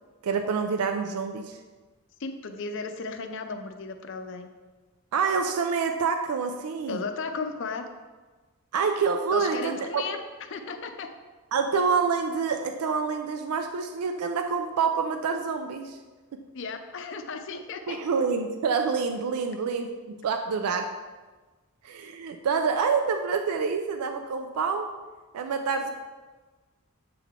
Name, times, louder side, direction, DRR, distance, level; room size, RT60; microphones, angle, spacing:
voice 1, 0.2-1.6 5.1-7.0 8.7-10.1 11.5-16.0 16.3-16.4 17.9-21.0 21.8-24.9 25.3-25.9, right 5 dB, 85° right, 6 dB, 0.4 m, -27 dB
voice 2, 2.2-4.5 6.9-7.9 9.3-10.2 10.5-11.1 16.5-18.0, left 4 dB, 55° left, 7 dB, 0.5 m, -35 dB
7.5 x 3.7 x 3.5 m, 1.3 s
head